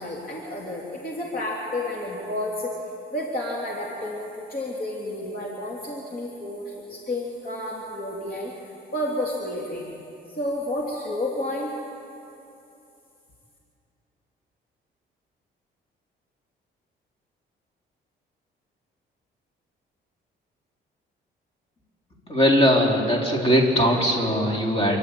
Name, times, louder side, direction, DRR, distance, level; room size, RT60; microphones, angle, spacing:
voice 1, 0.0-2.7 3.1-8.5 8.9-9.9 10.3-11.7, left 1 dB, 50° left, -3 dB, 3.3 m, -30 dB
voice 2, 22.3-25.0, equal, 30° left, -1 dB, 4.3 m, -20 dB
28.5 x 11.5 x 8.7 m, 2.7 s
cardioid pair, 90°, 20 cm